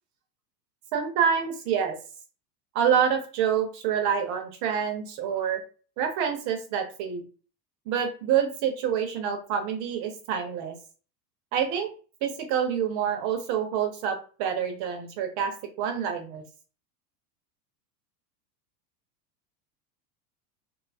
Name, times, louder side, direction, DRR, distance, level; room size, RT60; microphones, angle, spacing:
voice 1, 0.9-2.0 2.7-5.6 6.0-7.2 7.9-10.7 11.5-11.9 12.2-15.5 15.8-16.4, right 8 dB, 35° right, 4 dB, 0.6 m, -27 dB
2.6 x 2.3 x 2.5 m, 0.37 s
supercardioid pair, 140°, 50 cm